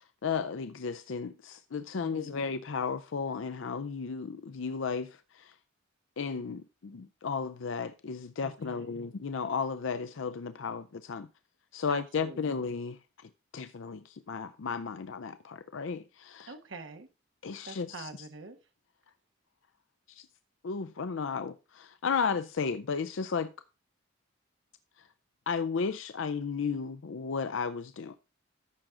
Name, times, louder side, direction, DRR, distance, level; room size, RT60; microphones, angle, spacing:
voice 1, 0.0-5.5 6.2-11.3 11.7-16.5 17.4-18.1 20.1-20.3 20.6-23.5 25.5-28.1, left 5 dB, 75° left, 0.5 m, -34 dB
voice 2, 1.9-2.4 8.4-9.0 11.9-12.4 16.4-17.1 17.6-18.6, right 3 dB, 70° right, 1.3 m, -46 dB
14.0 x 6.1 x 3.7 m
head